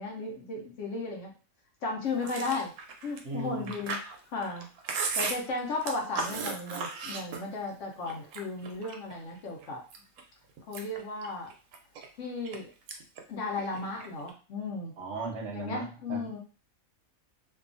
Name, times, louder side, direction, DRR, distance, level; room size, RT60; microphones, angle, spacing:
voice 1, 0.0-1.3 1.8-2.7 3.0-4.0 4.3-4.7 4.9-9.8 10.7-11.5 12.2-12.7 13.3-14.9 15.5-16.4, left 3 dB, 65° left, 0 dB, 0.9 m, -35 dB
Chewing mastication, 2.2-7.7 8.1-9.1 9.6-10.2 10.6-12.6 12.9-13.2 13.5-14.3, right 4 dB, 85° right, 1.0 m, -36 dB
voice 2, 3.2-3.7 15.0-16.4, right 3 dB, 65° right, 2 dB, 0.8 m, -37 dB
2.7 x 2.3 x 2.5 m, 0.36 s
omnidirectional pair, 1.5 m